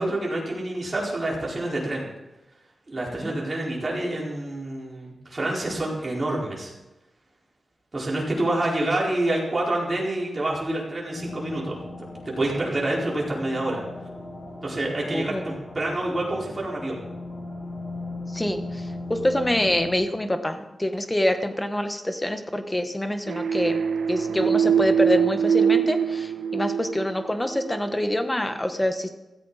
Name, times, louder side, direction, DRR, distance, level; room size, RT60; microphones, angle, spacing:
voice 1, 0.0-2.1 2.9-6.7 7.9-13.8 14.6-17.0, right 1 dB, 25° right, -4 dB, 4.7 m, -27 dB
sound 1, 11.1-19.9, left 2 dB, 35° left, 2.7 m, -37 dB
voice 2, 15.1-15.4 18.3-18.8 19.1-23.8 24.1-29.1, left 1 dB, 10° left, 7 dB, 1.1 m, -26 dB
sound 2, 23.3-27.8, right 7 dB, 80° right, 0.4 m, -23 dB
16.0 x 15.0 x 4.2 m, 1.0 s
wide cardioid pair, 165°, 0 cm